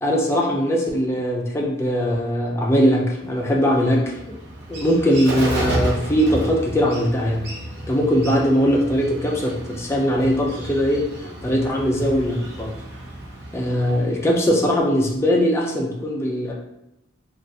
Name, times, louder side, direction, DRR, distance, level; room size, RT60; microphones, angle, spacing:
voice 1, 0.0-4.0 4.3-4.4 4.7-7.5 7.9-11.0 11.4-12.7 13.5-16.5, equal, 15° left, -2 dB, 0.4 m, -20 dB
Bird, 3.2-14.7, right 1 dB, 55° right, 0.7 m, -32 dB
3.3 x 2.4 x 2.6 m, 0.85 s
head